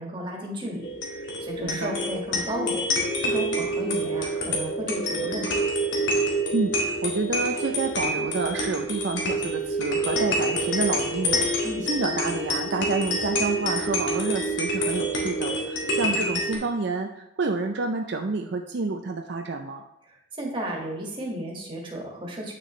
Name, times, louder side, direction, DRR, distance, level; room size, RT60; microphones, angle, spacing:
voice 1, 0.0-5.6 11.6-11.9 16.1-16.3 20.4-22.5, right 1 dB, 25° right, -2 dB, 1.8 m, -34 dB
sound 1, 0.8-16.6, equal, 75° left, 1.9 m, -27 dB
voice 2, 1.6-1.9 6.5-19.8, right 3 dB, 60° right, 4 dB, 0.5 m, -29 dB
9.2 x 6.5 x 3.2 m, 0.87 s
head